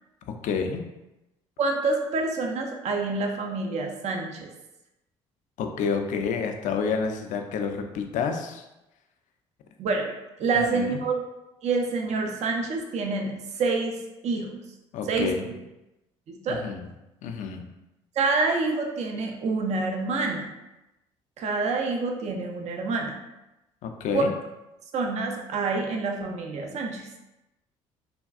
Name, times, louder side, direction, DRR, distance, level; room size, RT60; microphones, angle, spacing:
voice 1, 0.4-0.8 5.6-8.6 10.5-11.0 14.9-15.4 16.5-16.9 17.2-17.6 23.8-24.3, left 5 dB, 55° left, 5 dB, 0.4 m, -29 dB
voice 2, 1.6-4.5 9.8-10.1 10.4-11.2 11.6-13.3 13.6-14.0 14.2-14.5 15.1-15.3 16.3-16.6 18.2-20.5 21.4-23.2 24.1-24.2 24.9-27.1, right 3 dB, 50° right, 2 dB, 0.5 m, -27 dB
3.4 x 2.3 x 2.4 m, 0.96 s
hypercardioid pair, 55°, 15 cm